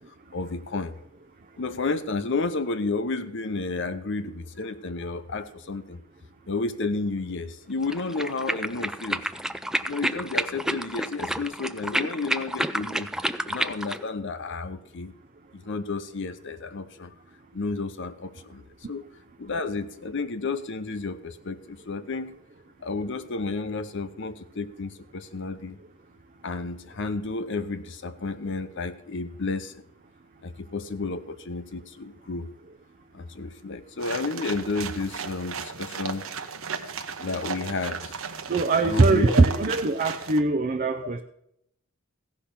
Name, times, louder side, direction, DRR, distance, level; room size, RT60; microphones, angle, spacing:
voice 1, 0.3-1.0 1.6-6.0 6.5-9.2 9.9-13.1 13.5-15.1 15.5-17.1 17.5-18.6 18.9-19.0 19.4-22.4 22.8-25.8 26.4-29.8 30.4-32.5 33.1-36.2 37.2-38.2 38.8-39.4, left 3 dB, 60° left, 11 dB, 0.8 m, -31 dB
sound 1, 7.8-14.0, right 1 dB, 5° right, 0.3 m, -30 dB
sound 2, 34.0-40.4, right 6 dB, 80° right, 1.0 m, -36 dB
voice 2, 38.5-41.2, right 3 dB, 45° right, 6 dB, 0.6 m, -21 dB
16.0 x 5.8 x 6.8 m, 0.75 s
head